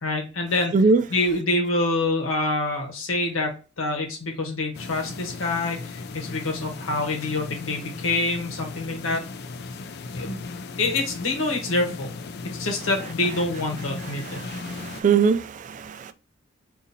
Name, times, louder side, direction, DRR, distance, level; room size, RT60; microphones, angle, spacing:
voice 1, 0.0-0.7 1.1-9.2 10.1-10.4 10.8-12.1 12.5-14.4, left 2 dB, 90° left, 1.1 m, -26 dB
sound 1, 4.7-15.0, left 4 dB, 55° left, 0.4 m, -37 dB
voice 2, 14.3-16.1, right 5 dB, 40° right, 0.3 m, -22 dB
2.7 x 2.7 x 3.9 m
head